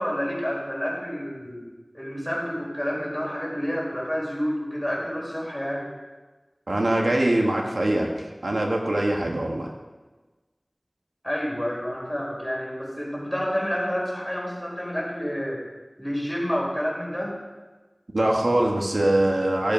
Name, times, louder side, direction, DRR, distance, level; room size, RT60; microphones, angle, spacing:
voice 1, 0.0-1.7 1.9-5.9 11.2-15.6 16.0-17.4, equal, 5° left, -4 dB, 4.5 m, -29 dB
voice 2, 6.7-9.7 18.1-19.7, right 1 dB, 90° right, 0 dB, 1.4 m, -23 dB
14.5 x 7.3 x 5.3 m, 1.2 s
wide cardioid pair, 40°, 0 cm